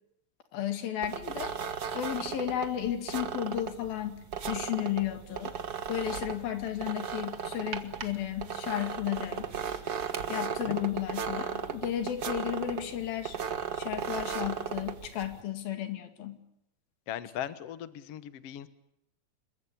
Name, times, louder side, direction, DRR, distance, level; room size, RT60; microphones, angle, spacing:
voice 1, 0.5-1.5 1.9-5.5 5.9-9.5 10.3-13.4 13.7-16.4, left 11 dB, 85° left, 7 dB, 4.0 m, -33 dB
sound 1, 1.0-15.4, right 7 dB, 65° right, 0.9 m, -36 dB
voice 2, 17.1-18.7, left 11 dB, 60° left, 13 dB, 1.8 m, -38 dB
26.5 x 22.5 x 8.6 m, 0.78 s
omnidirectional pair, 4.1 m